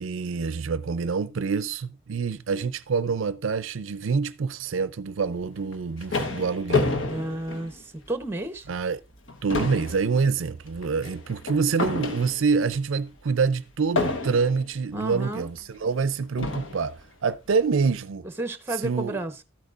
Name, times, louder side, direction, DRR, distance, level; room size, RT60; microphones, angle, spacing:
voice 1, 0.0-7.0 8.7-9.0 9.4-18.3 18.7-19.2, right 5 dB, 75° right, 0.5 m, -26 dB
sound 1, 5.6-8.2 8.7-8.9 9.2-12.7 14.0-14.7 15.6-15.7 16.4-16.9, left 3 dB, 65° left, 1.2 m, -29 dB
voice 2, 7.1-7.8 8.1-8.6 14.9-15.5 18.4-19.4, right 1 dB, 10° right, 1.0 m, -31 dB
13.0 x 8.1 x 2.5 m
head